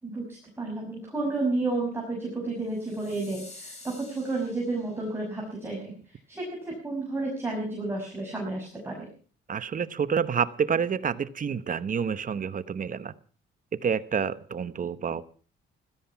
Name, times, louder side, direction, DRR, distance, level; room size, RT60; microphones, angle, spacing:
voice 1, 0.0-9.1, right 2 dB, 10° right, -2 dB, 6.2 m, -31 dB
sound 1, 2.7-5.1, left 2 dB, 35° left, 7.8 m, -49 dB
voice 2, 9.5-13.1 13.8-15.3, right 7 dB, 40° right, 14 dB, 1.1 m, -28 dB
16.5 x 13.5 x 5.9 m, 0.42 s
cardioid pair, 90°, 20 cm